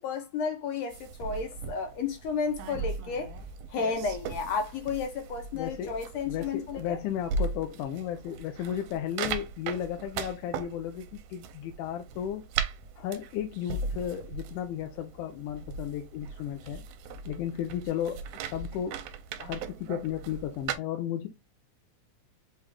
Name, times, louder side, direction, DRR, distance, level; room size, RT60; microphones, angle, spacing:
voice 1, 0.0-3.4 3.7-7.0, left 5 dB, 70° left, 1.8 m, -32 dB
sound 1, 0.9-20.8, right 5 dB, 80° right, 2.0 m, -38 dB
voice 2, 5.5-6.0 6.2-12.5 13.0-16.8 17.3-19.1 19.4-21.3, left 10 dB, 85° left, 2.1 m, -34 dB
5.7 x 2.4 x 3.3 m
omnidirectional pair, 3.6 m